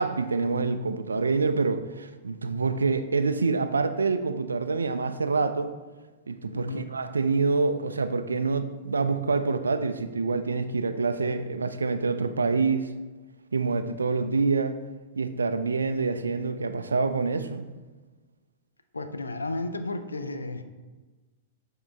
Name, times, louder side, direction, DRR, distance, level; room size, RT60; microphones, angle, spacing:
voice 1, 0.0-5.7 6.3-12.9 13.5-14.7 15.2-17.7, right 4 dB, 85° right, 10 dB, 0.4 m, -26 dB
voice 2, 6.5-6.9 18.9-20.6, left 2 dB, 85° left, 9 dB, 0.4 m, -33 dB
7.2 x 3.8 x 3.4 m, 1.3 s
figure-of-eight pair, 105°, 0 cm